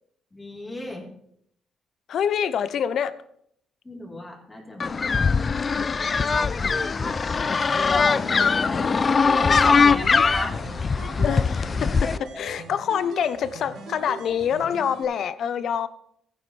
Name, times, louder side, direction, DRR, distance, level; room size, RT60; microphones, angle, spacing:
voice 1, 0.3-1.0 3.8-5.3 6.4-7.0 8.1-8.9 9.4-10.5, left 1 dB, 20° left, -1 dB, 3.8 m, -35 dB
voice 2, 2.1-3.2 9.7-10.2 11.2-15.9, left 8 dB, 65° left, 14 dB, 0.7 m, -26 dB
sound 1, 4.8-12.2, left 5 dB, 35° left, 0.4 m, -21 dB
sound 2, 6.6-15.0, right 4 dB, 80° right, 4.0 m, -40 dB
15.5 x 9.5 x 3.3 m, 0.70 s
cardioid pair, 90°, 0 cm